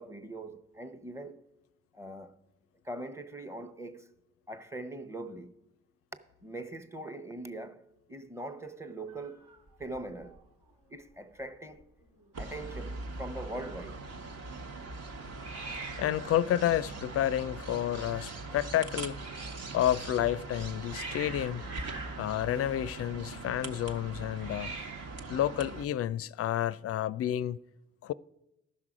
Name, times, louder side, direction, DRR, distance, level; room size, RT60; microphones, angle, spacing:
voice 1, 0.0-1.5 1.9-2.4 2.8-4.1 4.5-5.5 6.4-9.5 9.8-10.4 10.9-11.8 12.4-14.0, right 1 dB, 10° right, 0.8 m, -42 dB
Hiss, 9.1-10.4 10.7-11.1 11.4-11.5 11.7-12.4 15.4-19.7 20.4-23.4 24.3-25.3, right 3 dB, 70° right, 1.6 m, -46 dB
sound 1, 12.3-25.9, right 3 dB, 45° right, 1.0 m, -41 dB
voice 2, 16.0-19.2 19.7-21.6 22.2-24.7 25.3-27.6 28.0-28.1, left 11 dB, 45° left, 0.4 m, -30 dB
14.0 x 6.0 x 4.9 m
hypercardioid pair, 40°, 35 cm